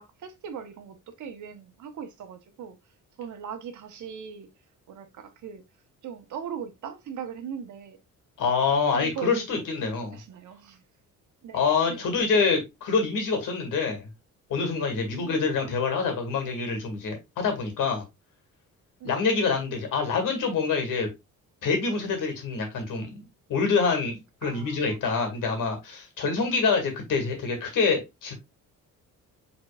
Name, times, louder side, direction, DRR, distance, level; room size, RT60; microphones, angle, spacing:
voice 1, 0.0-2.8 3.2-4.5 4.9-5.6 6.0-8.0 8.9-10.8 11.4-11.6 11.9-12.1 15.1-15.8 19.0-19.2 24.4-25.0, right 7 dB, 65° right, 1.0 m, -39 dB
voice 2, 8.4-10.2 11.5-14.1 14.5-18.0 19.0-21.1 21.6-23.2 23.5-28.3, left 4 dB, 75° left, 2.1 m, -26 dB
5.1 x 4.0 x 2.3 m
cardioid pair, 115°, 32 cm